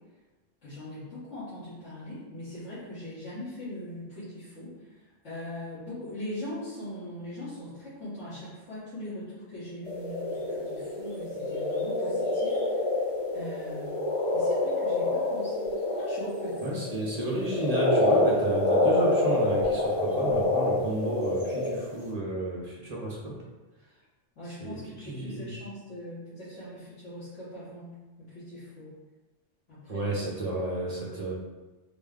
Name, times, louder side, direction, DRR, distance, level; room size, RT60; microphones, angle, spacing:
voice 1, 0.6-12.9 13.3-14.0 14.3-16.8 24.4-28.9 29.7-30.1, left 1 dB, 80° left, -15 dB, 1.7 m, -41 dB
sound 1, 9.9-22.0, left 2 dB, 30° left, 0.9 m, -27 dB
voice 2, 16.6-23.4 24.6-25.5 29.9-31.3, right 1 dB, 40° right, -4 dB, 0.8 m, -32 dB
3.9 x 2.2 x 3.6 m, 1.2 s
omnidirectional pair, 1.2 m